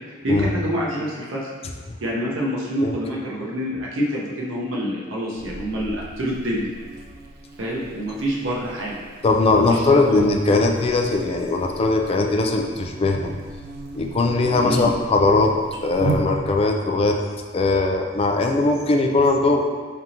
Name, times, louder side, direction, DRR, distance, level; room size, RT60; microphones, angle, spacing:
voice 1, 0.2-1.5 2.0-6.7 7.6-9.0 9.7-10.3 14.6-14.9, equal, 80° right, -4 dB, 0.9 m, -26 dB
Buzz, 5.4-16.8, right 2 dB, 55° right, 0.4 m, -35 dB
voice 2, 9.2-13.3 13.9-15.6 15.8-17.2 17.5-19.6, left 3 dB, 30° left, 3 dB, 0.3 m, -20 dB
3.8 x 3.5 x 2.8 m, 1.5 s
head